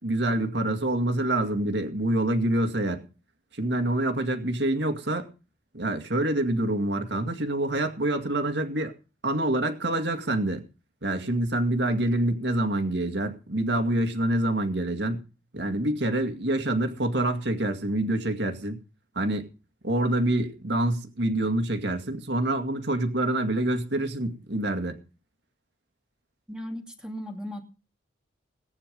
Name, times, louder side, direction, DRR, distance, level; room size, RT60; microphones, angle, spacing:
voice 1, 0.0-3.1 3.5-5.3 5.7-8.9 9.2-10.7 11.0-15.2 15.5-18.8 19.2-19.5 19.8-25.0, right 1 dB, 60° right, 5 dB, 2.1 m, -26 dB
voice 2, 26.5-27.6, equal, 5° right, 2 dB, 2.5 m, -36 dB
18.5 x 9.6 x 5.3 m, 0.33 s
head